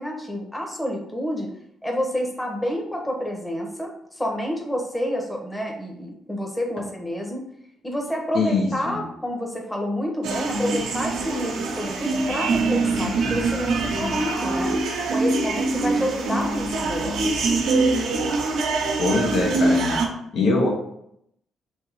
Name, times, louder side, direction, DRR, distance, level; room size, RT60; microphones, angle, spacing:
voice 1, 0.0-1.5 1.8-7.4 7.8-14.8 15.1-17.2, equal, 10° left, 0 dB, 1.0 m, -29 dB
voice 2, 8.3-9.0 19.0-20.0 20.3-20.7, left 3 dB, 75° left, -1 dB, 1.2 m, -22 dB
sound 1, 10.2-20.1, right 3 dB, 80° right, 0.9 m, -24 dB
3.5 x 3.0 x 4.7 m, 0.73 s
cardioid pair, 90°, 0 cm